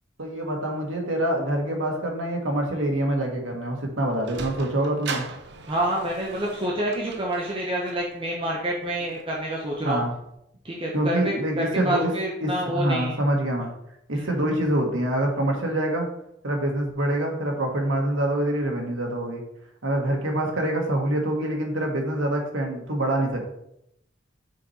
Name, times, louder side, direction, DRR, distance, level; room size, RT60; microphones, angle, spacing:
voice 1, 0.2-5.2 9.8-10.1 10.9-12.1 12.4-13.7 14.1-16.1 16.4-19.4 19.8-23.4, right 1 dB, 85° right, 1 dB, 1.6 m, -25 dB
Sliding door, 3.8-10.3, right 4 dB, 60° right, 0.8 m, -40 dB
voice 2, 5.7-10.0 10.6-13.2 14.1-14.3, right 1 dB, 30° right, -3 dB, 1.0 m, -28 dB
6.3 x 4.3 x 4.3 m, 0.78 s
head